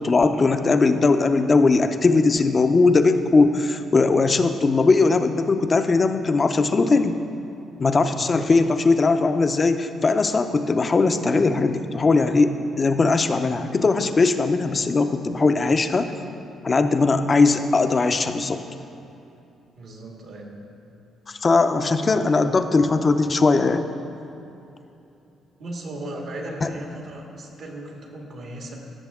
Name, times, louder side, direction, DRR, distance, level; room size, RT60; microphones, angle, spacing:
voice 1, 0.0-7.2 7.8-16.1 16.6-18.6 21.3-23.9 26.6-26.7, left 3 dB, 35° left, 8 dB, 0.6 m, -19 dB
voice 2, 8.1-8.5 19.8-20.5 22.0-22.4 25.6-28.8, right 1 dB, 70° right, 0 dB, 1.8 m, -37 dB
16.0 x 6.8 x 3.6 m, 2.8 s
cardioid pair, 90°, 0 cm